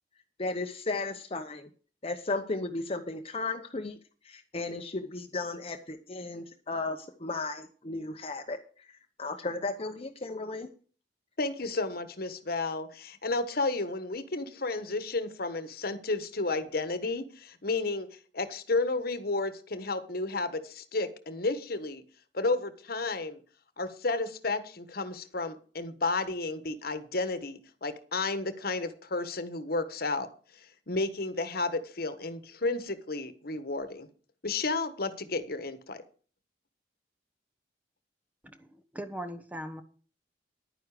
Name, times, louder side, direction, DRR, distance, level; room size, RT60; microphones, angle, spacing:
voice 1, 0.4-1.7 2.0-4.0 4.2-8.9 9.2-10.7, left 3 dB, 35° left, 5 dB, 0.9 m, -35 dB
voice 2, 11.4-18.1 18.3-22.0 22.3-23.4 23.8-30.3 30.5-34.1 34.4-36.0, left 3 dB, 60° left, 12 dB, 1.3 m, -32 dB
voice 3, 38.4-39.8, equal, 10° right, 7 dB, 1.1 m, -40 dB
11.0 x 9.8 x 4.9 m, 0.41 s
head